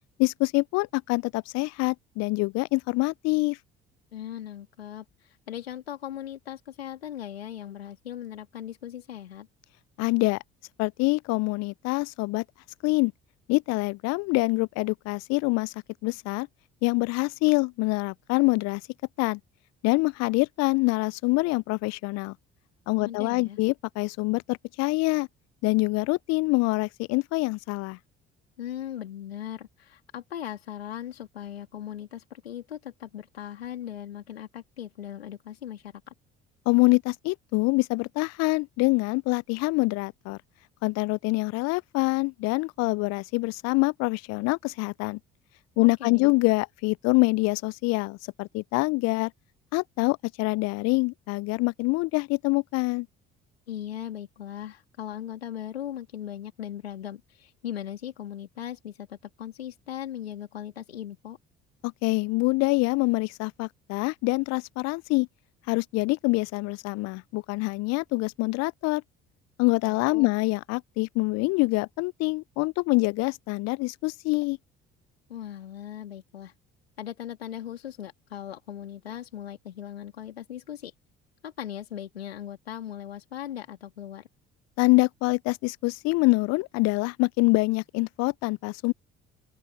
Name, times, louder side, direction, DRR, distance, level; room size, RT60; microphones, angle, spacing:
voice 1, 0.2-3.6 10.0-10.4 10.8-12.4 12.8-13.1 13.5-15.7 16.0-16.5 16.8-18.8 19.2-19.4 19.8-22.3 22.9-25.3 25.6-28.0 36.7-40.4 40.8-45.2 45.8-49.3 49.7-53.1 61.8-65.3 65.7-69.0 69.6-74.6 84.8-88.9, left 26 dB, 60° left, 0.4 m, -25 dB
voice 2, 4.1-9.5 23.0-23.6 28.6-36.1 45.8-46.3 53.7-61.4 69.8-70.4 75.3-76.5 77.0-80.9 81.4-84.3, left 11 dB, 90° left, 2.2 m, -38 dB
open air
hypercardioid pair, 55°, 30 cm